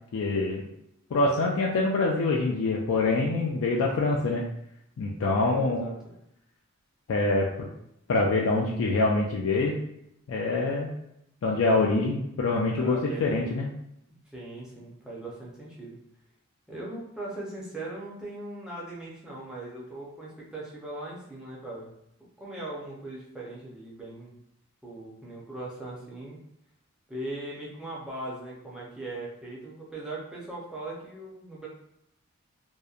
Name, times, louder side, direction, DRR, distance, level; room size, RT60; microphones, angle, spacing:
voice 1, 0.1-0.6 1.1-4.4 5.0-5.8 7.1-7.7 8.1-9.8 10.3-10.9 11.4-13.7, left 3 dB, 65° left, -2 dB, 0.3 m, -25 dB
voice 2, 5.3-6.1 12.8-13.4 14.3-16.0 16.7-21.9 22.4-24.3 24.8-26.4 27.1-31.7, right 2 dB, 5° right, -6 dB, 0.5 m, -39 dB
2.7 x 2.1 x 2.3 m, 0.80 s
head